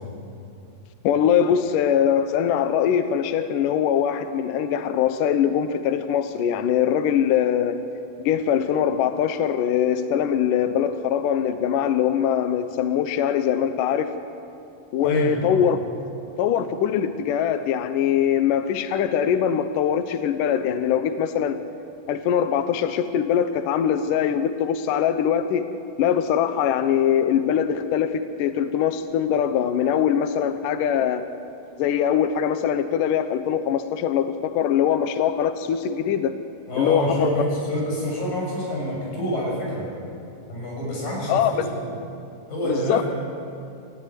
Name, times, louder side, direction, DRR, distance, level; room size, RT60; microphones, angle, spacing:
voice 1, 1.0-7.8 8.2-14.1 14.9-15.8 16.4-21.6 22.1-25.7 26.0-31.2 31.8-36.4 36.8-37.3 41.3-41.5 42.7-43.0, left 9 dB, 75° left, 9 dB, 2.0 m, -22 dB
voice 2, 15.0-15.6 36.7-39.9 40.5-41.8 42.5-43.0, equal, 55° left, -3 dB, 8.9 m, -27 dB
28.0 x 15.0 x 9.8 m, 2.6 s
omnidirectional pair, 4.8 m